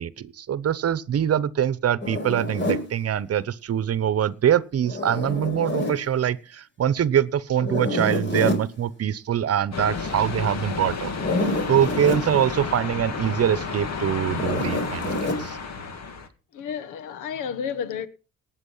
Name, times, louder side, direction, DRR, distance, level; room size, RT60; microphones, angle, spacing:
voice 1, 0.0-11.1 11.7-15.6, right 9 dB, 55° right, 1.0 m, -24 dB
Zipper (clothing), 2.0-2.9 4.8-6.0 7.6-8.7 11.1-12.3 14.3-15.4, left 1 dB, 40° left, 4.6 m, -27 dB
sound 1, 9.7-16.3, left 5 dB, 60° left, 2.6 m, -31 dB
voice 2, 16.5-18.1, left 7 dB, 90° left, 1.4 m, -31 dB
18.5 x 7.5 x 5.7 m
cardioid pair, 90°, 30 cm